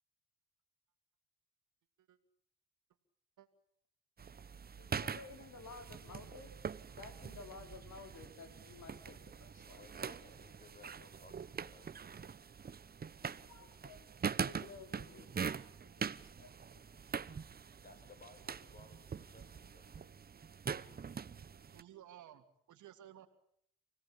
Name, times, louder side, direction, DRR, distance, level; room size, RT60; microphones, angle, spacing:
sound 1, 4.2-21.8, right 6 dB, 30° right, 0.9 m, -43 dB
voice 1, 4.8-6.5 6.9-9.9 13.5-14.1 14.4-16.8, left 4 dB, 65° left, 7 dB, 4.2 m, -54 dB
voice 2, 9.8-11.9 17.8-20.1, left 3 dB, 30° left, 6 dB, 6.8 m, -60 dB
voice 3, 21.4-23.3, right 11 dB, 75° right, 7 dB, 2.7 m, -56 dB
28.5 x 18.0 x 8.7 m, 0.69 s
cardioid pair, 90°, 30 cm